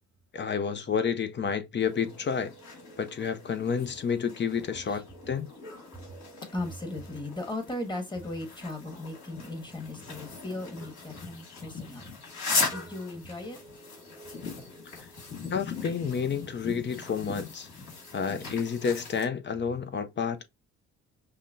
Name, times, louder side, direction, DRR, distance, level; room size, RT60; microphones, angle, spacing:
voice 1, 0.3-2.5 3.0-5.5 15.5-17.7 18.1-20.4, left 6 dB, 35° left, 0.6 m, -30 dB
sound 1, 1.8-19.2, left 4 dB, 65° left, 2.2 m, -39 dB
voice 2, 6.5-12.1 12.7-13.6, left 1 dB, 15° left, 1.4 m, -37 dB
5.6 x 2.2 x 2.6 m
cardioid pair, 90°, 30 cm